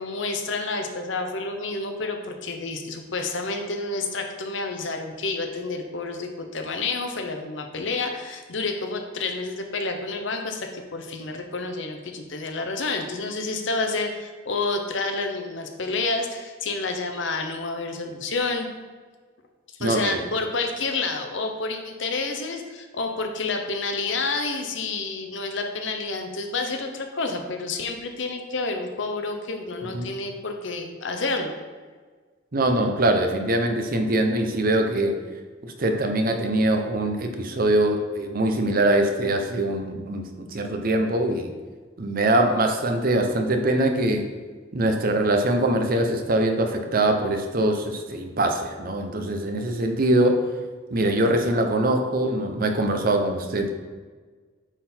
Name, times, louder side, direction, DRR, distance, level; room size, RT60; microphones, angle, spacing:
voice 1, 0.0-18.7 19.8-31.5, left 3 dB, 65° left, 4 dB, 0.9 m, -29 dB
voice 2, 19.8-20.2 29.9-30.1 32.5-35.2 35.6-41.5 42.0-44.3 44.7-50.5 50.9-53.7, right 1 dB, 45° right, 5 dB, 0.8 m, -23 dB
9.0 x 3.9 x 4.4 m, 1.5 s
head